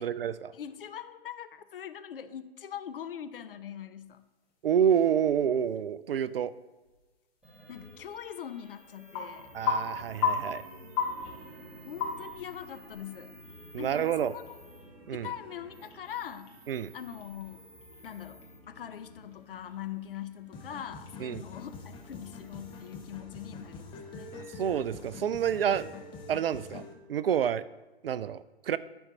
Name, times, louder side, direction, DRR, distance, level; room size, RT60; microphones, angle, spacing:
voice 1, 0.0-0.5 4.6-6.5 9.5-10.6 13.7-14.4 15.1-15.3 16.7-16.9 21.2-21.4 24.3-25.9 26.3-26.8 27.1-27.6 28.0-28.8, right 8 dB, 65° right, 16 dB, 0.5 m, -28 dB
voice 2, 0.5-4.2 7.7-9.5 11.8-13.3 13.8-14.6 15.1-16.5 16.9-17.7 18.0-24.3, left 9 dB, 60° left, 11 dB, 0.7 m, -42 dB
sound 1, 4.0-23.0, left 5 dB, 35° left, 2.2 m, -40 dB
sound 2, 7.4-25.0, right 1 dB, ahead, 1.5 m, -53 dB
sound 3, 20.5-26.9, left 3 dB, 15° left, 0.9 m, -45 dB
12.0 x 4.5 x 4.7 m, 1.1 s
figure-of-eight pair, 120°, 32 cm